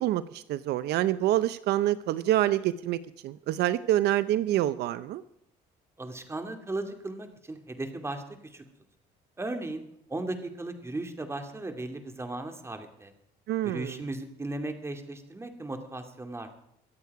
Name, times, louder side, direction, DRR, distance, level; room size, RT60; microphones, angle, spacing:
voice 1, 0.0-5.2 13.5-14.0, right 13 dB, 75° right, 15 dB, 0.7 m, -27 dB
voice 2, 6.0-8.2 8.5-8.6 9.4-9.8 10.1-13.1 13.6-16.5, right 2 dB, 15° right, 6 dB, 2.4 m, -36 dB
24.5 x 8.3 x 4.8 m, 0.78 s
cardioid pair, 110°, 17 cm